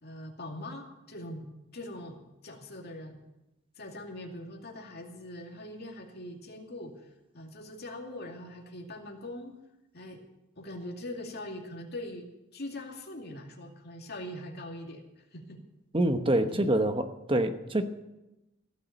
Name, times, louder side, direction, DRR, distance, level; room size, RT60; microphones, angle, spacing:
voice 1, 0.0-3.2 3.8-7.1 7.3-9.6 9.9-10.2 10.6-15.6 16.5-16.6, left 1 dB, 55° left, 2.5 m, -42 dB
voice 2, 15.9-17.8, right 1 dB, 25° right, 1.0 m, -26 dB
16.0 x 7.2 x 9.1 m
head